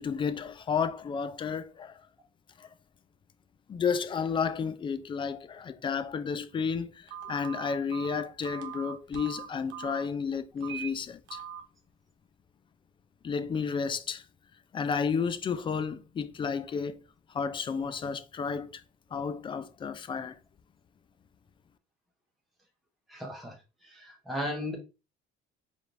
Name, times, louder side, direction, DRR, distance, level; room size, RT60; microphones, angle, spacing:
voice 1, 0.0-1.9 2.6-2.7 3.7-11.4 13.2-14.2 14.7-17.0 17.3-18.8 19.1-20.4, left 6 dB, 25° left, 0.4 m, -32 dB
Telephone, 7.1-10.0 10.6-10.9 11.3-11.6, right 9 dB, 65° right, 1.0 m, -40 dB
voice 2, 23.1-23.5 23.8-24.8, equal, ahead, 1.0 m, -35 dB
4.8 x 3.3 x 2.6 m
cardioid pair, 145°, 21 cm